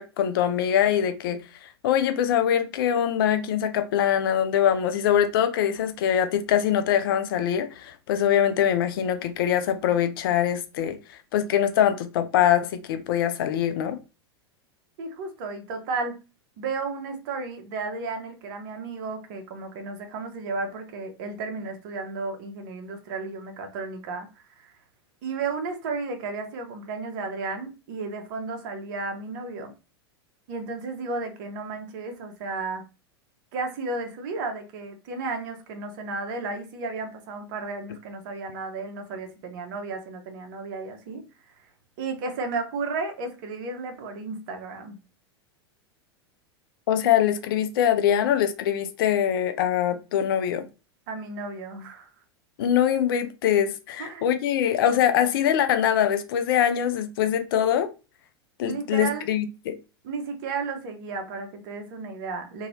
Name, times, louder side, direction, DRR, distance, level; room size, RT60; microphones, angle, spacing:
voice 1, 0.0-14.0 46.9-50.7 52.6-57.9 58.6-59.8, left 10 dB, 60° left, 0.5 m, -23 dB
voice 2, 15.0-16.2 16.6-24.7 25.2-29.7 30.5-32.8 33.5-41.2 42.0-45.0 51.1-52.1 54.0-54.3 58.6-59.3 60.0-62.7, right 3 dB, 50° right, 0.9 m, -33 dB
2.9 x 2.7 x 2.7 m
figure-of-eight pair, 90°, 14 cm